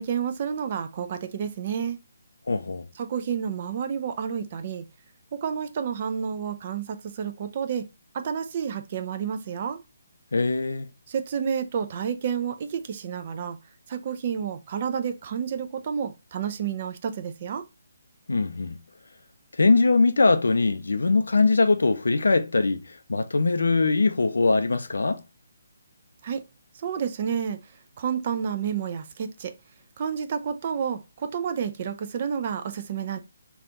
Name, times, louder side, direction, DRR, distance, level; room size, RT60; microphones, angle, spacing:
voice 1, 0.0-2.0 3.0-4.8 5.3-7.9 8.1-9.8 11.1-13.6 13.9-17.6 26.2-26.4 26.7-27.6 28.0-29.5 30.0-33.2, right 7 dB, 35° right, 0.4 m, -30 dB
voice 2, 2.5-2.9 10.3-10.9 18.3-18.8 19.6-25.2, left 3 dB, 60° left, 0.4 m, -22 dB
3.3 x 2.5 x 3.6 m
figure-of-eight pair, 140°, 0 cm